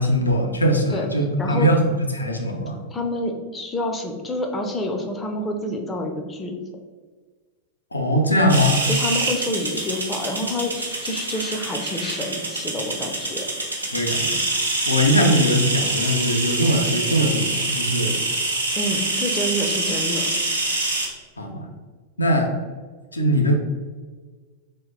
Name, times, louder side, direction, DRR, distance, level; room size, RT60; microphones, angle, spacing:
voice 1, 0.0-2.8 7.9-8.9 13.9-14.4 14.9-18.2 21.4-21.7 22.2-22.5 23.1-23.6, equal, 80° left, 3 dB, 0.4 m, -21 dB
voice 2, 2.9-6.5 8.9-13.5 18.8-20.3, left 1 dB, 15° left, 2 dB, 0.5 m, -28 dB
sound 1, 8.5-21.1, right 2 dB, 80° right, 0.6 m, -25 dB
2.8 x 2.1 x 3.6 m, 1.4 s
figure-of-eight pair, 90°, 0 cm